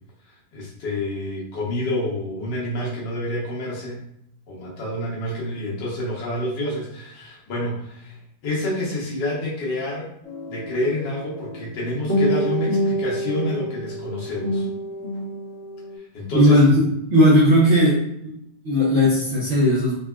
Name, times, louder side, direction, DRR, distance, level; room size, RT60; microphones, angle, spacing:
voice 1, 0.5-4.0 4.5-8.2 8.4-10.1 10.5-14.7 16.1-16.6, left 1 dB, 75° left, -4 dB, 1.5 m, -28 dB
sound 1, 10.2-16.0, equal, 15° left, 0.7 m, -27 dB
voice 2, 16.3-16.8 17.1-18.0 18.2-18.3 18.6-19.9, equal, 65° right, -6 dB, 0.7 m, -16 dB
3.9 x 2.2 x 2.3 m, 0.75 s
omnidirectional pair, 1.9 m